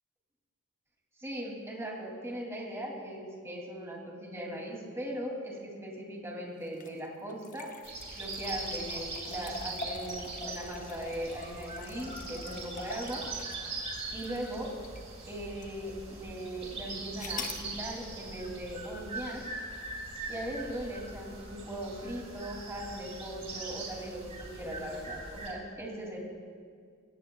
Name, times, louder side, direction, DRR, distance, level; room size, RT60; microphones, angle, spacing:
voice 1, 1.2-7.7 8.2-13.2 14.1-14.7 15.3-19.5 20.3-26.2, right 1 dB, 15° right, -1 dB, 2.7 m, -39 dB
sound 1, 6.7-15.1 15.6-15.7 17.2-17.7, left 3 dB, 40° left, 1.0 m, -44 dB
sound 2, 7.8-25.5, right 3 dB, 30° right, 4.1 m, -41 dB
25.0 x 17.5 x 2.3 m, 2.1 s
head